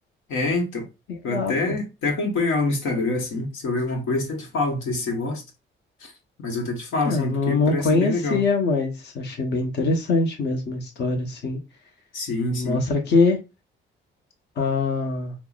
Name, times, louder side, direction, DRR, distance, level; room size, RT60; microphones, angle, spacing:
voice 1, 0.3-0.8 1.2-5.4 6.0-6.1 6.4-8.4 12.1-12.8, left 2 dB, 90° left, 1.1 m, -26 dB
voice 2, 1.1-1.5 7.0-11.6 12.5-13.4 14.6-15.3, left 3 dB, 60° left, 0.9 m, -23 dB
5.6 x 2.0 x 2.3 m
cardioid pair, 90°, 20 cm